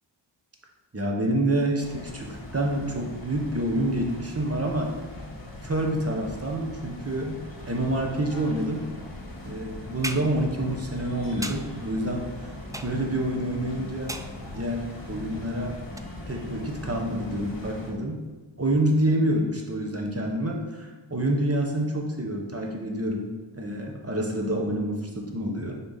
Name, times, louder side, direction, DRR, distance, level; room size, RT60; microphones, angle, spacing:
voice 1, 0.9-4.9 5.6-7.4 7.7-8.8 9.4-12.2 12.8-14.1 14.5-15.8 16.3-18.2 18.6-25.8, right 1 dB, 30° right, 1 dB, 1.2 m, -27 dB
sound 1, 1.8-17.9, left 1 dB, 50° left, 1.3 m, -40 dB
sound 2, 10.0-10.4 11.4-11.7 12.7-13.2 14.1-14.5 16.0-16.1, right 1 dB, 10° right, 0.3 m, -36 dB
7.0 x 4.4 x 4.1 m, 1.3 s
wide cardioid pair, 70°, 46 cm